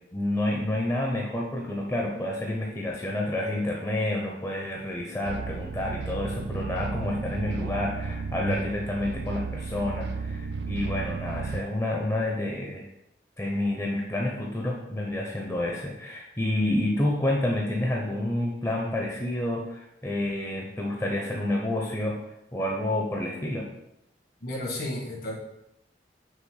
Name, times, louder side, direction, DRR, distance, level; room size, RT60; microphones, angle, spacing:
voice 1, 0.1-12.8 13.4-22.2 22.5-23.7, left 1 dB, 15° left, -1 dB, 0.7 m, -29 dB
sound 1, 5.2-11.6, right 4 dB, 70° right, 0.5 m, -33 dB
voice 2, 24.4-25.3, left 1 dB, 60° left, -2 dB, 2.2 m, -32 dB
6.3 x 3.0 x 5.7 m, 0.83 s
head